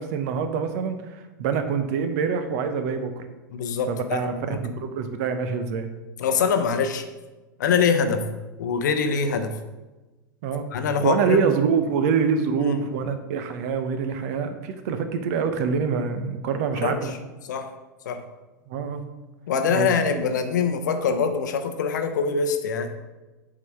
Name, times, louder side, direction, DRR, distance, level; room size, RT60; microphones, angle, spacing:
voice 1, 0.0-3.2 3.9-5.9 10.4-10.7 11.0-17.1 18.7-19.0 19.7-19.9, right 6 dB, 55° right, 8 dB, 0.8 m, -25 dB
voice 2, 3.5-4.6 6.2-7.0 7.6-8.3 8.6-9.6 10.7-11.5 12.6-12.8 16.7-17.2 17.5-17.7 18.0-18.2 19.5-23.0, left 5 dB, 70° left, 8 dB, 0.8 m, -24 dB
7.3 x 3.8 x 4.8 m, 1.1 s
hypercardioid pair, 95°, 10 cm